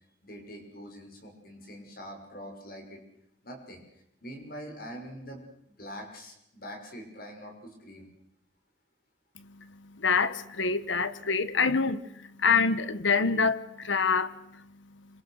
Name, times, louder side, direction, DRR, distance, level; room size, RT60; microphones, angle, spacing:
voice 1, 0.2-3.0 3.4-3.8 4.2-8.1, equal, 50° left, 6.5 m, -44 dB
voice 2, 9.4-14.6, left 5 dB, 90° left, 1.5 m, -27 dB
27.0 x 26.5 x 6.6 m
head